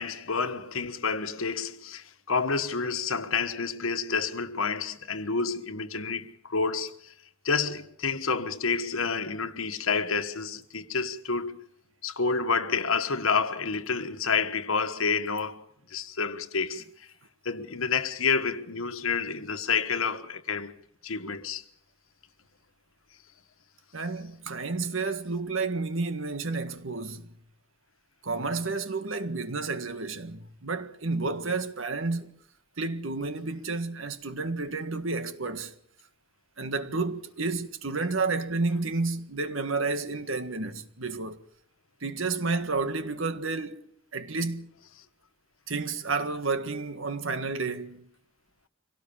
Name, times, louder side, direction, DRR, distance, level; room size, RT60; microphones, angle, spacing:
voice 1, 0.0-7.1 7.4-11.6 12.0-16.8 17.4-20.7 21.0-21.6, left 5 dB, 90° left, 1.4 m, -29 dB
voice 2, 23.9-27.3 28.2-32.4 32.8-35.7 36.6-41.4 42.0-44.7 45.7-48.1, right 3 dB, 75° right, 1.7 m, -31 dB
25.0 x 18.0 x 7.2 m
head